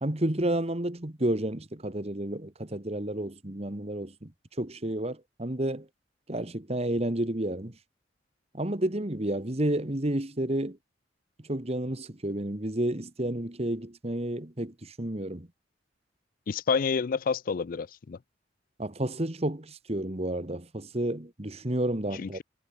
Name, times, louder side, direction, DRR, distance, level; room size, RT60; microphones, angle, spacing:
voice 1, 0.0-4.3 4.6-5.9 6.3-7.8 8.5-10.8 11.5-15.5 18.8-22.4, right 1 dB, 35° right, 1.8 m, -31 dB
voice 2, 16.5-18.2 22.2-22.4, left 5 dB, 50° left, 0.4 m, -29 dB
head